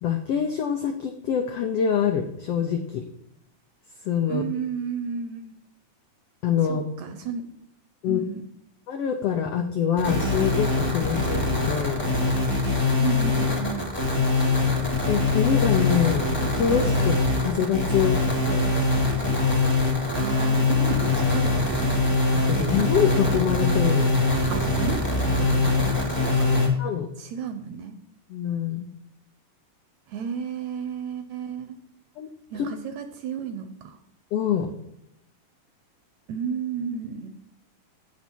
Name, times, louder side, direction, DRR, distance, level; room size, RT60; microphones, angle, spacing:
voice 1, 0.0-3.0 4.0-4.4 6.4-6.8 8.0-8.2 8.9-12.1 15.1-18.7 22.5-24.1 26.8-27.1 28.3-28.9 32.2-32.3 32.5-32.7 34.3-34.7, left 8 dB, 85° left, 5 dB, 1.3 m, -25 dB
voice 2, 4.3-5.5 6.7-7.5 8.1-8.4 13.0-13.9 20.2-22.0 24.5-26.5 27.2-28.0 30.1-31.8 32.5-34.0 36.3-37.3, right 6 dB, 75° right, 7 dB, 1.8 m, -33 dB
sound 1, 10.0-26.7, left 2 dB, 5° left, 2.1 m, -23 dB
8.3 x 7.2 x 4.4 m, 0.78 s
omnidirectional pair, 3.8 m